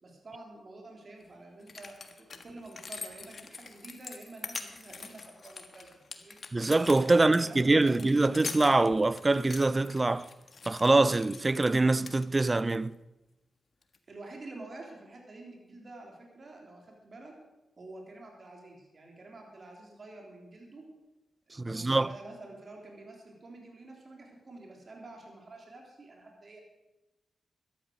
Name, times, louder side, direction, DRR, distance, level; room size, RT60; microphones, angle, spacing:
voice 1, 0.0-6.4 7.1-8.0 14.1-17.3 17.8-20.8 21.5-26.6, right 2 dB, 50° right, 3.6 m, -48 dB
sound 1, 1.2-1.3 1.6-11.8 12.1-12.8 13.8-14.0, left 4 dB, 55° left, 1.5 m, -44 dB
voice 2, 6.5-10.3 10.7-12.9 21.6-22.1, right 2 dB, 30° right, 0.5 m, -24 dB
13.0 x 12.0 x 6.4 m
cardioid pair, 60°, 0 cm